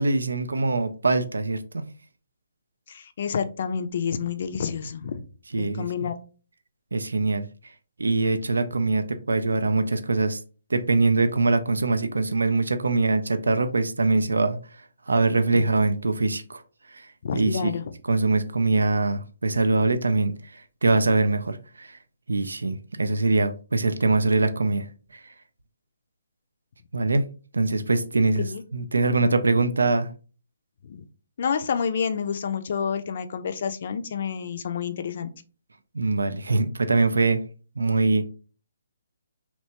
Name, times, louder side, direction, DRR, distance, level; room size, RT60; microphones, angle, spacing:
voice 1, 0.0-1.8 5.5-6.1 6.9-7.5 8.0-10.4 10.7-14.6 15.1-16.6 16.9-17.1 17.3-17.7 18.1-22.0 22.3-24.9 25.1-25.2 26.9-27.3 27.5-28.5 28.7-30.1 35.9-37.4 37.8-38.2, right 3 dB, 85° right, 0.3 m, -23 dB
voice 2, 2.9-5.2 5.6-6.1 15.5-15.6 17.2-17.8 28.4-28.6 30.8-31.0 31.4-35.3, left 7 dB, 55° left, 0.3 m, -29 dB
2.9 x 2.1 x 2.8 m
hypercardioid pair, 145°, 0 cm